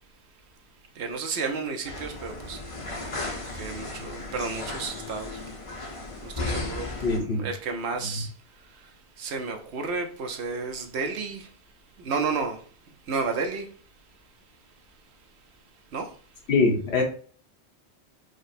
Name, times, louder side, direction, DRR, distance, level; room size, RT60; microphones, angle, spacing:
voice 1, 0.9-5.5 6.2-11.5 12.0-12.7 13.1-13.7 15.9-16.2, right 4 dB, 75° right, 1.0 m, -32 dB
sound 1, 1.8-7.2, left 2 dB, 35° left, 0.7 m, -35 dB
voice 2, 7.0-7.5 16.5-17.0, left 3 dB, 75° left, 1.3 m, -23 dB
4.8 x 2.0 x 4.1 m
omnidirectional pair, 1.1 m